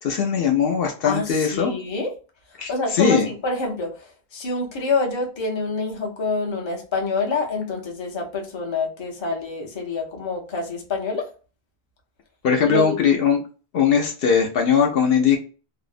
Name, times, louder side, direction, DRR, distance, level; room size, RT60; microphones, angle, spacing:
voice 1, 0.0-1.7 2.6-3.3 12.4-13.4 13.7-15.4, left 6 dB, 70° left, 2 dB, 0.7 m, -20 dB
voice 2, 1.0-2.1 2.5-11.3 12.6-13.0, left 3 dB, 30° left, 0 dB, 0.7 m, -27 dB
2.7 x 2.0 x 2.4 m, 0.36 s
omnidirectional pair, 1.1 m